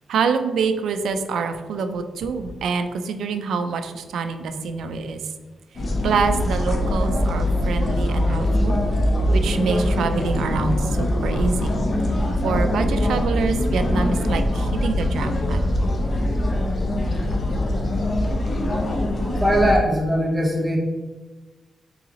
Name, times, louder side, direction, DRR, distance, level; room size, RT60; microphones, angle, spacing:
voice 1, 0.1-5.2 6.0-8.8 9.3-11.7 12.4-15.8, right 5 dB, 85° right, 8 dB, 0.3 m, -26 dB
sound 1, 5.8-19.8, left 1 dB, 40° left, 0.7 m, -22 dB
voice 2, 19.4-20.8, equal, 20° right, -1 dB, 0.9 m, -20 dB
3.9 x 3.0 x 3.6 m, 1.2 s
wide cardioid pair, 130°, 0 cm